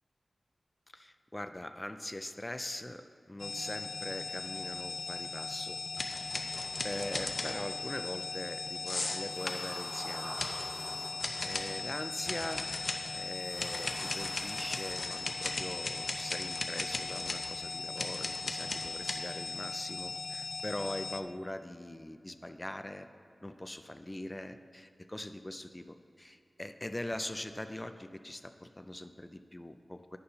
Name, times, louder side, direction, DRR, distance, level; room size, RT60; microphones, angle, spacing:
voice 1, 0.9-6.3 6.8-10.7 11.4-12.7 13.0-23.1 23.4-30.2, left 1 dB, 20° left, 9 dB, 0.4 m, -42 dB
sound 1, 3.4-21.2, left 4 dB, 80° left, 0.4 m, -39 dB
sound 2, 6.0-7.8 8.9-9.7 10.4-10.7 11.2-11.8 12.2-13.1 13.6-19.1, left 2 dB, 55° left, 0.8 m, -38 dB
sound 3, 6.2-16.4, right 1 dB, 40° right, 1.0 m, -50 dB
9.6 x 6.7 x 5.6 m, 2.3 s
wide cardioid pair, 70°, 0 cm